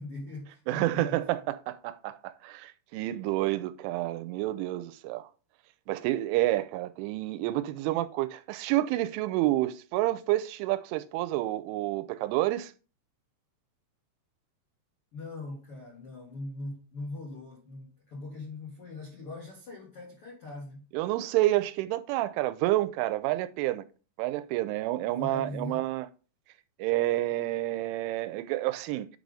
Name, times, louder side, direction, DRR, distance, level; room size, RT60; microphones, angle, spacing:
voice 1, 0.0-1.2 7.4-7.5 7.8-7.9 15.1-20.8 25.1-25.8, left 2 dB, 65° left, 1.3 m, -41 dB
voice 2, 0.7-5.3 5.9-12.7 20.9-23.8 24.2-26.1 26.8-29.1, right 16 dB, 85° right, 3.0 m, -29 dB
8.9 x 4.0 x 4.9 m
omnidirectional pair, 5.5 m